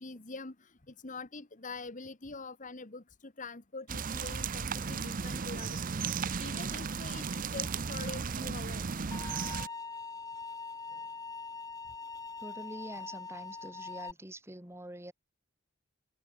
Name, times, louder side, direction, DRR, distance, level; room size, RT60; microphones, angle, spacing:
voice 1, 0.0-6.1 6.4-8.8, left 3 dB, 35° left, 1.4 m, -45 dB
sound 1, 3.9-9.7, right 5 dB, 40° right, 0.6 m, -35 dB
sound 2, 9.1-14.1, left 4 dB, 15° left, 1.0 m, -42 dB
voice 2, 12.4-15.1, right 1 dB, 10° right, 3.2 m, -46 dB
open air
head